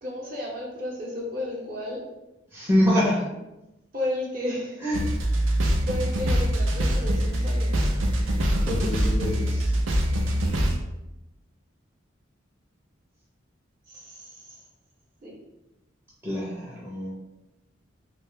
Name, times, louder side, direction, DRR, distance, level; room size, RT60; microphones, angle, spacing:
voice 1, 0.0-2.0 3.9-4.8 5.9-7.9 13.9-14.6 15.2-15.3, left 1 dB, 45° right, -4 dB, 0.8 m, -33 dB
voice 2, 2.5-3.3 4.8-5.0 8.6-9.7 16.2-17.1, equal, 10° right, -7 dB, 0.5 m, -25 dB
sound 1, 4.9-10.8, equal, 85° right, 0.5 m, -24 dB
2.7 x 2.2 x 3.5 m, 0.95 s
head